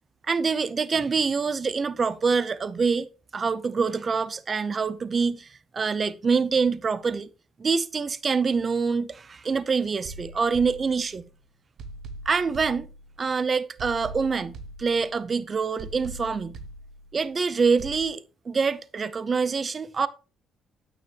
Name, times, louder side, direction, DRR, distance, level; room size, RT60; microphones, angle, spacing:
voice 1, 0.3-3.1 3.3-7.3 7.6-11.3 12.3-12.9 13.2-16.6 17.1-20.1, right 5 dB, 40° right, 0.7 m, -25 dB
sound 1, 10.0-11.3 11.8-13.3 13.8-15.3 15.8-17.3 17.8-18.1, right 2 dB, 65° right, 1.3 m, -42 dB
9.8 x 8.9 x 3.0 m
cardioid pair, 90°, 0 cm